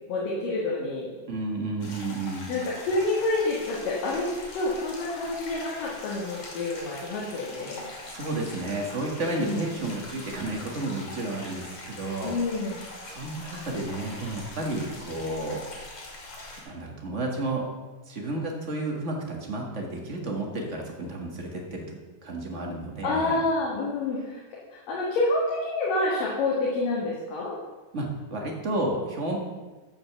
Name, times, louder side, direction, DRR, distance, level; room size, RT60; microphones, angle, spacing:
voice 1, 0.1-1.1 2.5-7.9 9.4-9.7 12.2-12.8 23.0-24.4 24.7-27.5, left 2 dB, 80° left, -5 dB, 3.4 m, -28 dB
voice 2, 1.2-2.5 8.1-12.3 13.1-15.6 16.6-17.7 18.1-21.9 22.2-23.4 27.9-29.4, right 2 dB, 30° right, 0 dB, 1.4 m, -31 dB
sound 1, 1.8-16.6, left 2 dB, 60° left, 4.0 m, -42 dB
14.0 x 5.4 x 6.7 m, 1.2 s
omnidirectional pair, 3.7 m